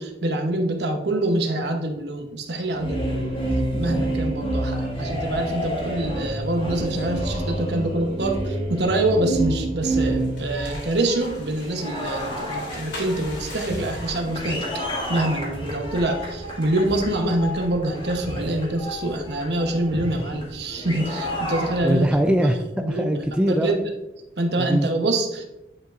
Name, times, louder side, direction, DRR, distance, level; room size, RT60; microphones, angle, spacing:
voice 1, 0.0-3.3 3.7-14.8 15.1-22.1 22.8-23.2 23.5-23.8 24.4-25.4, right 1 dB, 65° right, 5 dB, 1.0 m, -25 dB
sound 1, 2.7-22.3, right 1 dB, 30° left, 2.1 m, -29 dB
sound 2, 9.8-15.3, left 2 dB, 75° left, 2.3 m, -42 dB
voice 2, 21.8-23.9 24.6-24.9, equal, 5° right, 5 dB, 0.3 m, -22 dB
9.5 x 5.4 x 2.5 m, 0.97 s
head